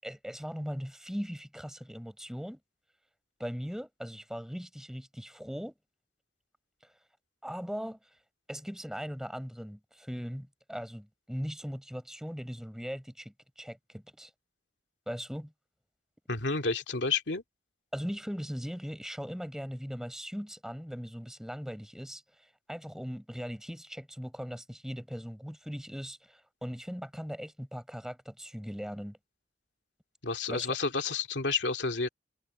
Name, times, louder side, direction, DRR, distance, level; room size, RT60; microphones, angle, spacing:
voice 1, 0.0-2.6 3.4-5.7 7.4-8.0 8.5-14.3 15.1-15.5 17.9-22.2 22.7-29.2 30.5-30.7, equal, 5° right, 7.0 m, -39 dB
voice 2, 16.3-17.4 30.2-32.1, left 4 dB, 80° left, 2.5 m, -30 dB
head